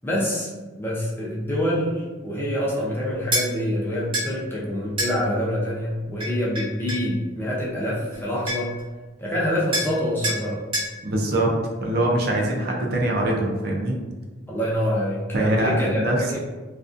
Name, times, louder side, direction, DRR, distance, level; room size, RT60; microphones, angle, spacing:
voice 1, 0.0-0.5 0.8-8.8 9.2-10.6 14.5-16.4, equal, 10° left, -6 dB, 0.5 m, -26 dB
sound 1, 3.3-3.5 4.1-4.3 5.0-5.2 6.2-7.1 8.1-8.2 8.5-8.8 9.7-10.0 10.2-10.4 10.7-10.9, equal, 25° right, 0.7 m, -26 dB
voice 2, 11.0-11.5 11.8-13.9 15.3-16.4, right 1 dB, 50° right, -1 dB, 0.4 m, -23 dB
2.4 x 2.2 x 2.4 m, 1.3 s
head